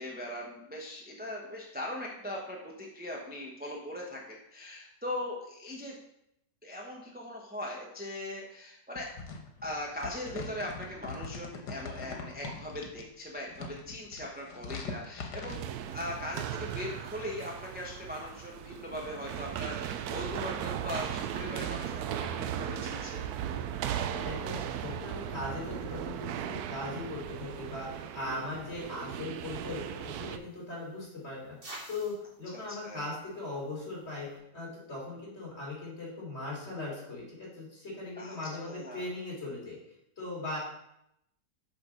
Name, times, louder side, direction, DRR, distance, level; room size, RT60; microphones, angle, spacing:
voice 1, 0.0-6.0 6.6-9.1 9.6-23.2 28.2-28.6 32.5-33.2 38.2-38.4 38.6-39.1, left 1 dB, 10° right, -2 dB, 0.8 m, -40 dB
sound 1, 9.0-13.1 13.5-15.6, left 4 dB, 85° left, 1.7 m, -42 dB
sound 2, 15.5-30.4, right 9 dB, 75° right, 1.0 m, -37 dB
voice 2, 23.9-31.6 31.9-39.8 40.2-40.6, left 2 dB, 40° left, -4 dB, 3.7 m, -39 dB
sound 3, 29.3-34.4, right 1 dB, 35° right, 2.1 m, -53 dB
6.3 x 5.1 x 6.2 m, 0.79 s
omnidirectional pair, 1.8 m